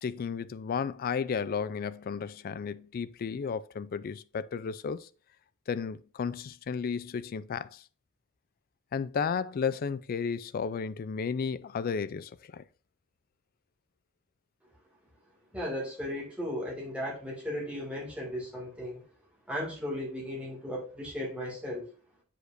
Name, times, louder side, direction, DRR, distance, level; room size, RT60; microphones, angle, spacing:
voice 1, 0.0-5.1 5.7-7.8 8.9-12.6, left 6 dB, 45° left, 0.3 m, -33 dB
voice 2, 15.5-19.0 19.5-21.9, left 1 dB, 5° right, 2.1 m, -36 dB
7.9 x 5.1 x 2.5 m
head